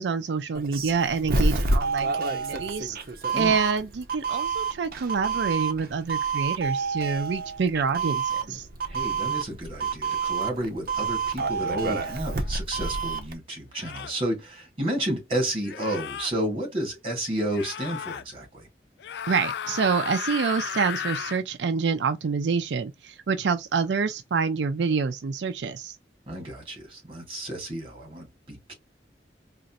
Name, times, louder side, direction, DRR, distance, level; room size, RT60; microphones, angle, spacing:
voice 1, 0.0-3.0 3.3-8.7 19.2-26.0, right 5 dB, 85° right, 0.4 m, -27 dB
Doorbell, 0.5-13.3, right 4 dB, 55° right, 0.7 m, -28 dB
voice 2, 8.9-18.7 26.3-28.7, right 1 dB, 30° right, 2.1 m, -31 dB
sound 1, 12.4-12.5 13.7-14.2 15.6-16.3 17.5-18.2 19.0-21.4, left 8 dB, 70° left, 0.3 m, -34 dB
4.0 x 2.5 x 2.4 m
head